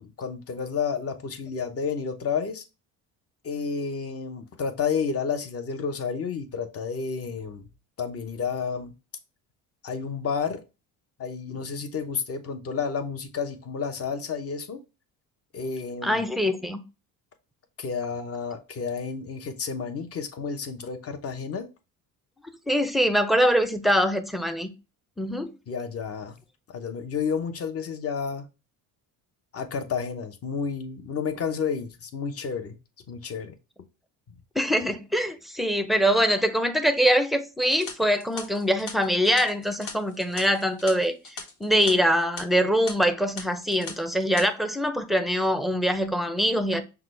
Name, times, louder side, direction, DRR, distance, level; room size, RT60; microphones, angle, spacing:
voice 1, 0.0-2.6 3.4-7.7 8.0-8.9 9.8-10.6 11.2-14.8 15.5-16.2 17.8-21.7 25.7-26.4 26.7-28.5 29.5-32.8 33.1-33.5, left 6 dB, 40° left, 0.8 m, -31 dB
voice 2, 16.0-16.8 22.7-24.7 25.2-25.5 34.6-41.2 41.6-46.8, equal, ahead, 0.5 m, -23 dB
sound 1, 37.6-41.9 42.2-42.4 42.9-43.0 43.4-43.9 44.2-44.4, left 3 dB, 90° left, 1.2 m, -39 dB
5.7 x 2.3 x 3.2 m
cardioid pair, 95°, 37 cm